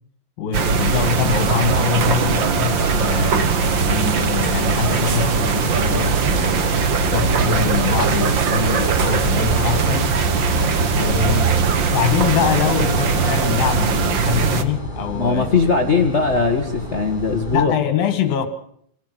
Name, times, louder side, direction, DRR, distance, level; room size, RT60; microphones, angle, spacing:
voice 1, 0.4-3.5 3.9-6.7 7.1-10.2 10.9-15.6 17.5-18.5, left 8 dB, 75° left, 3.6 m, -24 dB
sound 1, 0.5-14.6, right 5 dB, 55° right, 1.3 m, -20 dB
sound 2, 2.8-17.6, right 3 dB, 15° left, 3.8 m, -29 dB
voice 2, 15.1-17.7, left 4 dB, 55° left, 0.7 m, -19 dB
25.5 x 16.5 x 7.9 m
omnidirectional pair, 4.1 m